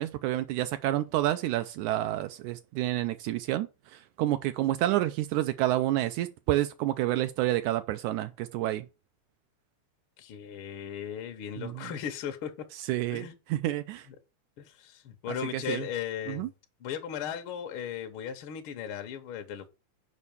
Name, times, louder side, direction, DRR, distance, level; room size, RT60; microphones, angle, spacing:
voice 1, 0.0-8.9 11.6-11.9 12.9-14.1 15.5-15.8 16.3-16.5, right 15 dB, 80° right, 1.9 m, -29 dB
voice 2, 10.2-12.5 13.1-13.4 14.6-16.5 16.8-19.7, left 8 dB, 65° left, 1.3 m, -37 dB
6.4 x 5.5 x 7.0 m
omnidirectional pair, 3.6 m